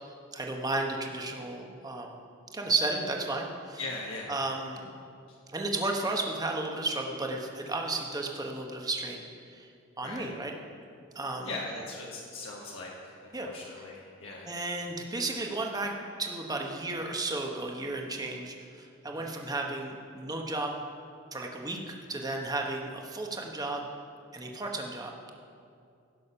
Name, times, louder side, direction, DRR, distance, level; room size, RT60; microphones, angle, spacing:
voice 1, 0.3-2.2 2.5-3.8 4.3-4.9 5.5-9.2 9.5-9.7 10.0-10.5 11.1-11.5 13.3-13.5 14.5-15.9 16.2-20.7 21.3-23.8 24.3-25.1, right 2 dB, 20° right, 1 dB, 1.1 m, -33 dB
voice 2, 3.8-4.4 5.3-5.4 10.0-10.3 11.4-14.6 19.1-19.3, left 2 dB, 70° left, -3 dB, 1.5 m, -40 dB
16.0 x 6.4 x 5.6 m, 2.4 s
head